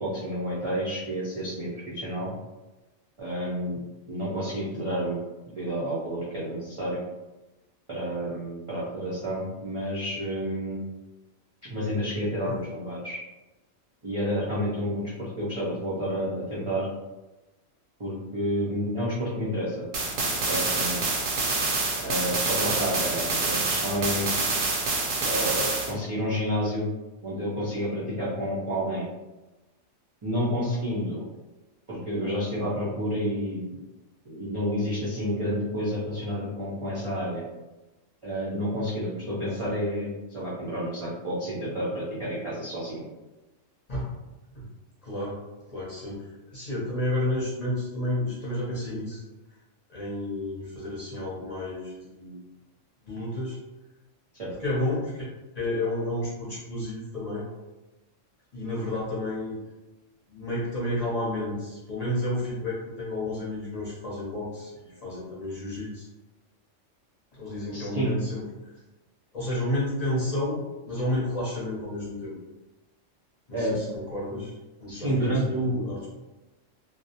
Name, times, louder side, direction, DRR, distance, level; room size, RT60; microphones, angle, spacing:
voice 1, 0.0-2.3 3.2-3.8 4.1-5.2 5.5-7.0 7.9-10.8 11.6-13.2 14.0-16.9 18.0-19.8 20.3-21.0 22.0-24.4 25.2-26.9 27.2-29.0 30.2-31.2 31.9-33.8 34.3-37.5 38.2-43.0 54.4-54.5 67.7-68.1 73.5-73.9 74.3-74.4 74.9-75.8, equal, 45° right, -9 dB, 0.4 m, -30 dB
sound 1, 19.9-25.9, right 3 dB, 85° right, 1.0 m, -27 dB
voice 2, 45.0-45.4 45.7-49.2 49.9-52.4 53.0-53.6 54.6-55.3 55.5-57.5 58.5-59.6 60.3-66.1 67.3-68.7 69.3-72.4 73.5-76.1, left 1 dB, 40° left, -8 dB, 0.7 m, -31 dB
2.4 x 2.0 x 2.7 m, 1.1 s
omnidirectional pair, 1.3 m